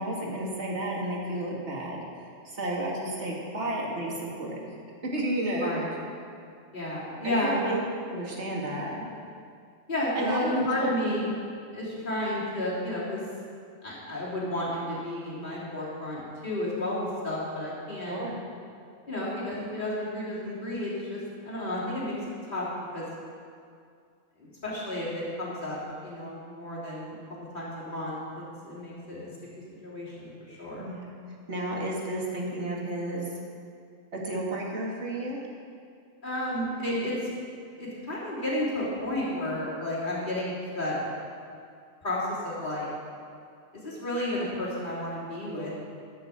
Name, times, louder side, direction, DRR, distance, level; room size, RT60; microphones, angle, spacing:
voice 1, 0.0-4.6 5.1-5.7 7.2-7.8 8.1-9.1 10.1-10.9 18.1-18.4 30.8-31.1 31.5-33.3 34.1-35.4, right 1 dB, 60° right, -2 dB, 2.1 m, -32 dB
voice 2, 6.7-7.6 9.9-11.3 11.7-13.2 13.8-18.2 19.1-22.2 22.5-22.7 22.9-23.1 24.4-25.8 26.0-27.2 27.5-29.3 29.5-30.8 36.2-37.1 37.8-41.0 42.0-42.9 43.7-45.8, left 1 dB, 40° left, -8 dB, 3.6 m, -32 dB
13.0 x 6.2 x 7.3 m, 2.3 s
omnidirectional pair, 1.3 m